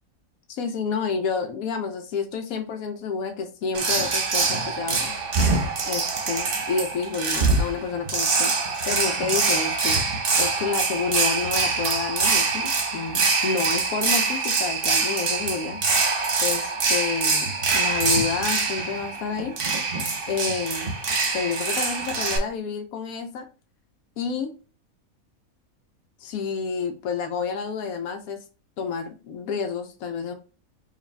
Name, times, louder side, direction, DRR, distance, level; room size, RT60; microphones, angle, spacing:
voice 1, 0.5-5.1 5.8-10.0 10.4-15.8 16.4-19.6 20.3-20.9 21.3-23.5 24.2-24.5 26.2-28.4 28.8-30.3, left 5 dB, 85° left, 6 dB, 1.0 m, -29 dB
sound 1, 3.7-22.4, right 4 dB, 45° right, 0.9 m, -24 dB
4.8 x 2.6 x 3.2 m, 0.34 s
omnidirectional pair, 1.5 m